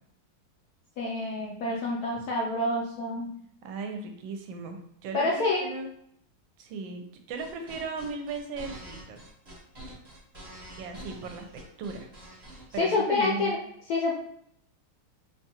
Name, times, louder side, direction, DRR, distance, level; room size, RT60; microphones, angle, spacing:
voice 1, 1.0-3.3 5.1-5.7 12.8-13.6 13.9-14.1, left 2 dB, 75° left, -2 dB, 0.9 m, -27 dB
voice 2, 3.6-5.9 6.6-9.2 10.7-12.1 12.7-13.6, right 4 dB, 80° right, 5 dB, 1.3 m, -37 dB
sound 1, 7.3-12.8, right 1 dB, 35° right, 0.3 m, -46 dB
4.3 x 2.3 x 2.8 m, 0.70 s
omnidirectional pair, 2.1 m